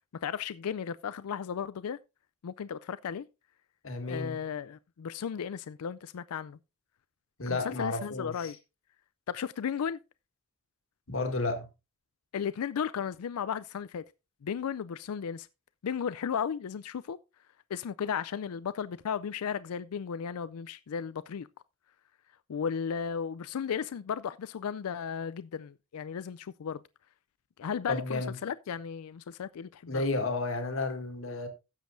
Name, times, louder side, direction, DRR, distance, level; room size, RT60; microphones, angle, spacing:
voice 1, 0.2-2.0 2.4-3.3 4.1-6.6 7.5-8.6 9.3-10.0 12.3-14.0 14.4-15.5 15.8-17.2 17.7-21.5 22.5-26.8 27.6-30.0, left 7 dB, 85° left, 0.4 m, -35 dB
voice 2, 3.8-4.4 7.4-8.5 11.1-11.7 27.9-28.3 29.9-31.5, left 3 dB, 65° left, 1.8 m, -32 dB
16.5 x 7.4 x 2.6 m
head